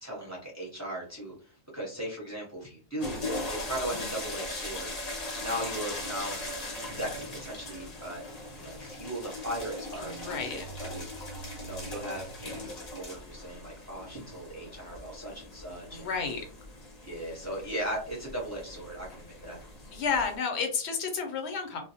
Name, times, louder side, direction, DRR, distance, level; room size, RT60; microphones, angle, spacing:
voice 1, 0.0-3.2 3.6-6.4 7.0-8.2 8.6-10.5 10.8-11.1 11.6-16.1 17.0-19.6, right 1 dB, 20° right, -3 dB, 0.7 m, -38 dB
sound 1, 3.0-20.4, left 1 dB, 45° left, 0.7 m, -40 dB
voice 2, 10.0-10.7 15.9-16.4 17.2-17.3 19.9-21.8, left 5 dB, 85° left, 5 dB, 0.9 m, -31 dB
2.3 x 2.0 x 2.6 m, 0.40 s
omnidirectional pair, 1.1 m